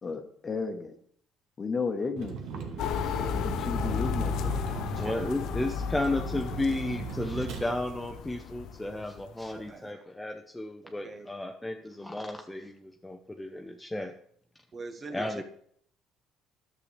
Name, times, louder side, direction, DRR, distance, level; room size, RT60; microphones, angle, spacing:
voice 1, 0.0-0.9 1.6-2.8 3.2-4.3, left 4 dB, 35° left, 6 dB, 1.1 m, -34 dB
Vehicle, 2.2-7.6, right 6 dB, 70° right, 1.2 m, -38 dB
sound 1, 2.8-9.3, left 8 dB, 70° left, 0.5 m, -34 dB
voice 2, 3.8-5.3 9.6-9.9 10.8-11.3 14.7-15.4, right 3 dB, 35° right, 7 dB, 1.0 m, -44 dB
voice 3, 5.0-14.1 15.1-15.4, left 2 dB, 10° left, 4 dB, 0.7 m, -33 dB
10.5 x 6.9 x 3.3 m, 0.66 s
supercardioid pair, 85°, 0 cm